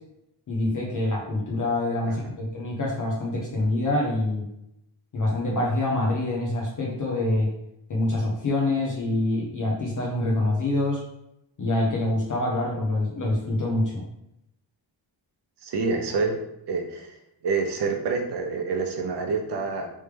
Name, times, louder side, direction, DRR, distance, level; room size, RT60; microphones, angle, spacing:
voice 1, 0.5-4.5 5.1-7.5 7.9-11.0 11.6-14.0, left 2 dB, 45° left, -4 dB, 0.8 m, -25 dB
voice 2, 15.6-16.4 16.7-17.2 17.4-19.9, right 4 dB, 60° right, 4 dB, 0.7 m, -27 dB
3.2 x 3.2 x 3.3 m, 0.81 s
wide cardioid pair, 170°, 45 cm